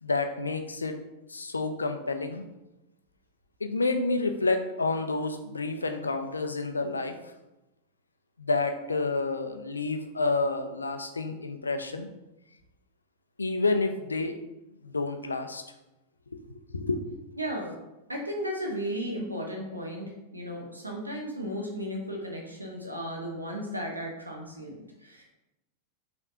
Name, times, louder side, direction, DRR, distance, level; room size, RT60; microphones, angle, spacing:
voice 1, 0.0-1.0 1.3-2.4 3.6-7.3 8.4-12.1 13.4-14.4 14.8-15.6 16.3-16.4 16.7-17.0, left 3 dB, 75° left, 7 dB, 0.4 m, -29 dB
voice 2, 17.4-17.8 18.1-25.2, equal, 85° right, 0 dB, 0.9 m, -35 dB
5.1 x 3.3 x 2.7 m, 0.97 s
figure-of-eight pair, 90°, 0 cm